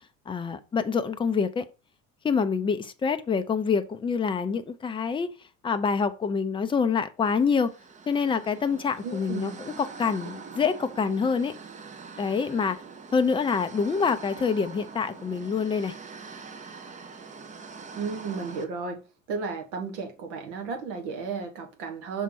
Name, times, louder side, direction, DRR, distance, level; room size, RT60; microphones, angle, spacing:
voice 1, 0.3-1.7 2.2-5.3 5.6-7.7 8.1-11.5 12.2-12.8 13.1-15.9, left 5 dB, 15° left, 0.6 m, -26 dB
sound 1, 7.4-18.7, right 5 dB, 20° right, 0.8 m, -44 dB
voice 2, 9.0-9.6 17.9-19.0 19.3-22.2, right 5 dB, 60° right, 1.6 m, -33 dB
5.9 x 4.5 x 4.4 m
figure-of-eight pair, 65°, 40 cm